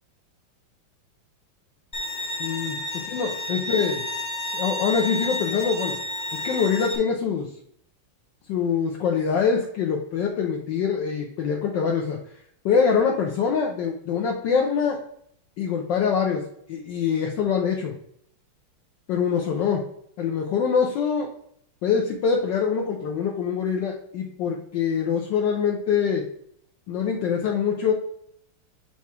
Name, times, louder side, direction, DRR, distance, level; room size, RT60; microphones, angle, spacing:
Bowed string instrument, 1.9-7.0, left 1 dB, 10° left, 0.8 m, -30 dB
voice 1, 2.4-2.8 3.1-4.0 4.5-6.0 6.3-7.5 8.5-12.2 12.6-15.0 15.6-16.4 16.7-17.9 19.1-19.8 20.2-21.3 21.8-26.2 26.9-27.9, left 6 dB, 70° left, -1 dB, 1.3 m, -24 dB
7.1 x 2.9 x 4.7 m, 0.69 s
omnidirectional pair, 2.3 m